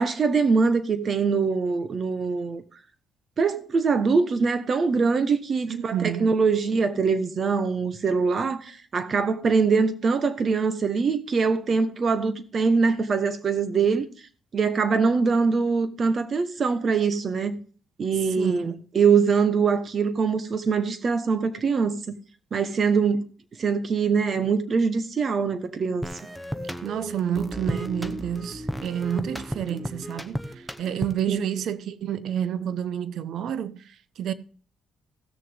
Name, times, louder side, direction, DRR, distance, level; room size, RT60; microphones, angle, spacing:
voice 1, 0.0-2.6 3.4-14.1 14.5-17.6 18.0-22.1 22.5-23.2 23.6-26.1 31.3-31.4, right 5 dB, 45° right, 1.2 m, -23 dB
voice 2, 5.7-6.3 18.4-18.7 26.8-34.3, right 9 dB, 70° right, 0.6 m, -29 dB
sound 1, 26.0-31.4, equal, 5° right, 0.9 m, -34 dB
16.0 x 6.6 x 3.6 m
cardioid pair, 90°, 0 cm